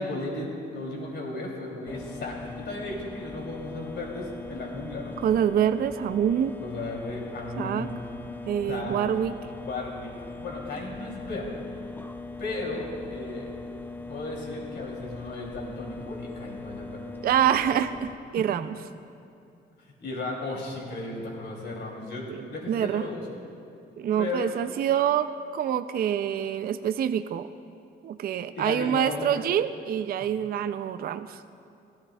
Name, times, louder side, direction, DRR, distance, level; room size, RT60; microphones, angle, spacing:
voice 1, 0.0-5.2 6.6-8.0 8.7-9.0 9.6-11.6 12.4-13.5 14.1-17.0 20.0-23.2 24.2-24.5 28.6-29.3, left 2 dB, 60° left, -2 dB, 2.9 m, -35 dB
sound 1, 1.9-18.1, left 3 dB, 10° left, 0.4 m, -40 dB
voice 2, 5.2-6.5 7.6-7.9 8.5-9.4 17.2-18.8 22.3-22.4 22.7-23.1 24.0-27.5 28.0-31.4, right 9 dB, 50° right, 10 dB, 0.4 m, -26 dB
17.0 x 13.5 x 2.3 m, 2.6 s
cardioid pair, 90°, 20 cm